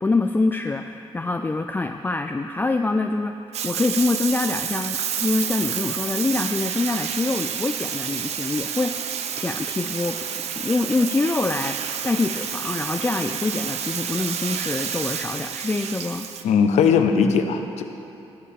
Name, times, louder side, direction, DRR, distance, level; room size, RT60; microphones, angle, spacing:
voice 1, 0.0-3.3 3.6-10.3 10.6-16.3, left 3 dB, 15° left, 5 dB, 0.3 m, -25 dB
Bathtub (filling or washing), 3.5-16.4, right 8 dB, 75° right, 0.5 m, -29 dB
voice 2, 16.4-17.8, left 6 dB, 80° left, 7 dB, 0.7 m, -19 dB
16.0 x 6.6 x 3.6 m, 2.8 s
cardioid pair, 85°, 11 cm